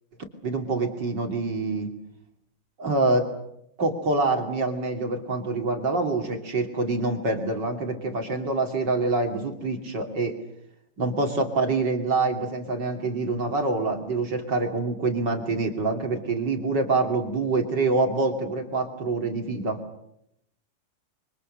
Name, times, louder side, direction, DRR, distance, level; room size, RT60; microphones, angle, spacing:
voice 1, 0.4-1.9 2.8-3.3 3.8-10.4 11.0-19.8, right 3 dB, 30° right, 4 dB, 2.8 m, -26 dB
28.5 x 24.5 x 6.7 m, 0.77 s
omnidirectional pair, 4.7 m